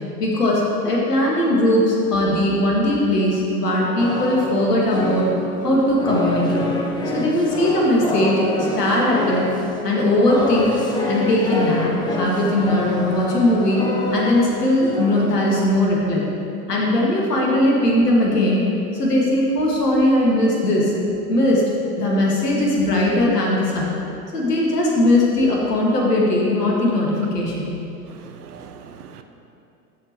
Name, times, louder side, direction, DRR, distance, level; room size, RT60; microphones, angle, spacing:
voice 1, 0.2-5.3 5.6-6.7 7.1-9.4 9.8-10.8 11.0-13.8 14.1-16.3 16.7-18.6 18.9-20.9 21.3-21.6 21.9-23.9 24.3-27.7, left 1 dB, 75° left, -3 dB, 2.1 m, -19 dB
sound 1, 4.0-16.0, left 2 dB, 10° left, 0.8 m, -27 dB
voice 2, 28.1-29.2, right 7 dB, 70° right, 7 dB, 0.8 m, -41 dB
13.0 x 4.5 x 4.5 m, 2.8 s
figure-of-eight pair, 90°, 48 cm